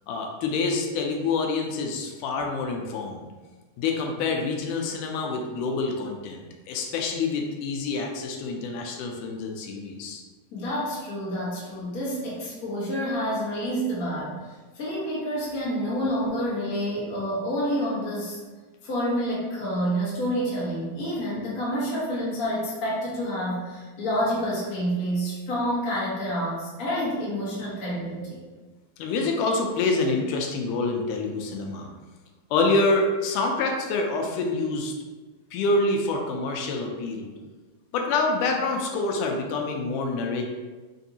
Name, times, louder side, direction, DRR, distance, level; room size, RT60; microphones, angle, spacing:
voice 1, 0.1-3.3 3.8-10.2 29.0-31.9 32.5-34.9 35.5-37.3 37.9-40.5, left 3 dB, 85° left, 2 dB, 2.0 m, -26 dB
voice 2, 10.5-18.4 18.8-28.4, equal, 45° left, -9 dB, 1.1 m, -28 dB
5.4 x 2.6 x 2.7 m, 1.3 s
omnidirectional pair, 3.6 m